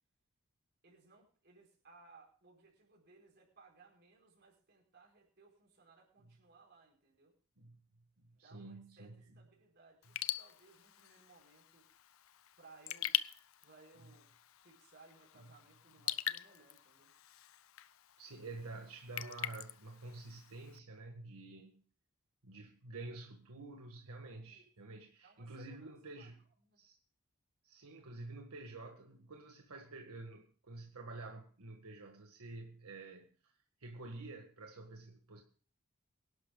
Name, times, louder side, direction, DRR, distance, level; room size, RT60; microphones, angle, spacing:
voice 1, 0.8-7.4 8.3-11.9 12.6-13.2 13.6-14.3 14.6-17.1 24.4-24.7 25.2-26.3 26.6-26.8, right 3 dB, 50° right, 4.7 m, -63 dB
voice 2, 8.2-9.1 18.2-21.8 22.4-26.4 26.8-27.0 27.6-33.5 33.8-35.4, right 2 dB, 85° right, 1.6 m, -49 dB
Raindrop / Drip, 10.0-20.8, left 13 dB, 65° left, 0.5 m, -43 dB
23.5 x 11.5 x 2.3 m
head